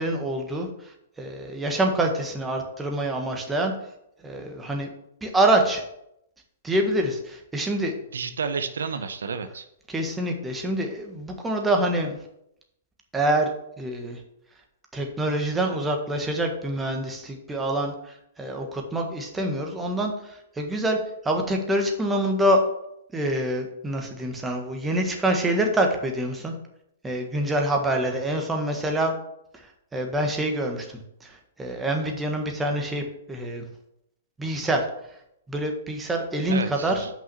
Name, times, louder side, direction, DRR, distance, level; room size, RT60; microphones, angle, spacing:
voice 1, 0.0-3.7 4.2-4.9 5.2-5.8 6.6-7.9 9.9-12.2 13.1-14.2 14.9-21.0 21.2-22.6 23.1-26.5 27.0-29.1 29.5-33.6 34.4-34.9 35.5-37.1, right 1 dB, 10° right, 2 dB, 1.5 m, -26 dB
voice 2, 8.1-9.7 36.5-37.1, right 5 dB, 80° right, 11 dB, 0.7 m, -31 dB
5.8 x 5.8 x 7.0 m, 0.79 s
hypercardioid pair, 125°, 0 cm